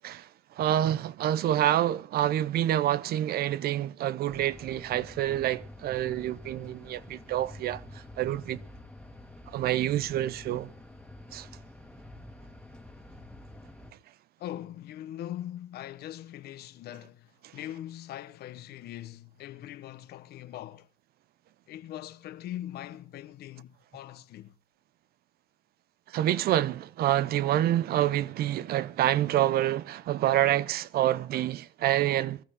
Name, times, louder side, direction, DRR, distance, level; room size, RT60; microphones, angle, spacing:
voice 1, 0.6-7.8 8.2-8.6 9.5-10.7 11.3-11.5 26.1-32.4, right 12 dB, 65° right, 0.7 m, -27 dB
sound 1, 4.3-13.9, left 1 dB, 5° left, 2.0 m, -48 dB
voice 2, 14.4-20.9 21.7-24.5, left 12 dB, 70° left, 1.1 m, -41 dB
22.5 x 12.5 x 3.7 m
cardioid pair, 110°, 17 cm